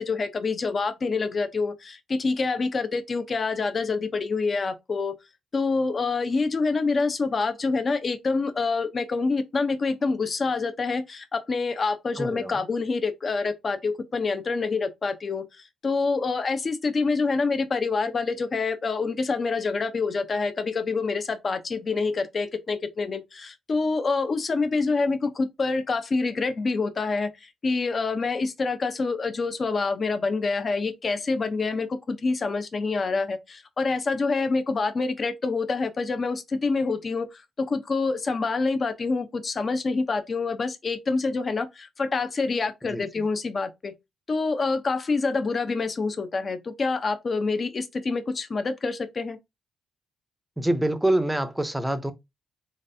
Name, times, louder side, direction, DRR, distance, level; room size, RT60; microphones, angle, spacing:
voice 1, 0.0-5.2 5.5-43.9 44.3-49.4, left 4 dB, 40° left, 0.7 m, -26 dB
voice 2, 12.2-12.5 42.9-43.2 50.6-52.1, right 1 dB, 5° right, 0.7 m, -26 dB
3.9 x 3.2 x 2.7 m
cardioid pair, 90°, 0 cm